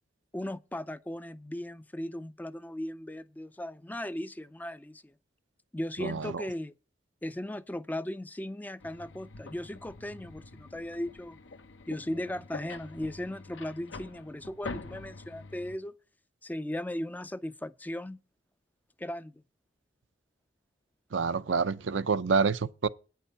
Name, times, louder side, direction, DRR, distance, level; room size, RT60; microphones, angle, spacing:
voice 1, 0.3-5.1 5.7-6.7 7.2-11.4 11.9-15.9 16.4-18.2 19.0-19.4, left 1 dB, 10° left, 0.4 m, -37 dB
voice 2, 6.0-6.4 21.1-22.9, right 5 dB, 80° right, 0.6 m, -28 dB
sound 1, 8.8-15.8, left 3 dB, 85° left, 1.0 m, -46 dB
9.4 x 5.6 x 8.3 m
head